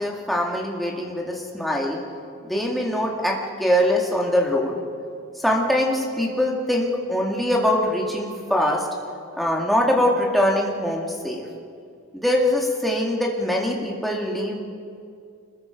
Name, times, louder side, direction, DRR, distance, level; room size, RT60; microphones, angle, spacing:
voice 1, 0.0-2.0 2.4-4.8 5.4-8.8 9.4-11.4 12.1-14.6, left 1 dB, ahead, -2 dB, 2.4 m, -23 dB
26.0 x 21.5 x 5.3 m, 2.3 s
head